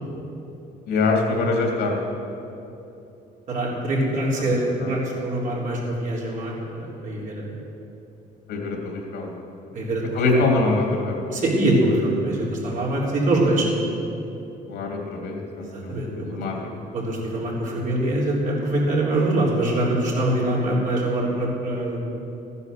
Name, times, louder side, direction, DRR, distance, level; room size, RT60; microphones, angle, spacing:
voice 1, 0.9-1.9 4.4-4.5 4.8-4.9 8.5-9.3 10.1-11.2 14.7-16.5, left 3 dB, 75° left, 0 dB, 2.9 m, -24 dB
voice 2, 3.5-7.4 9.7-10.4 11.3-13.7 15.9-16.1 16.6-16.7 16.9-22.0, right 1 dB, 50° right, -4 dB, 3.9 m, -23 dB
14.5 x 9.8 x 6.8 m, 2.9 s
cardioid pair, 110°, 17 cm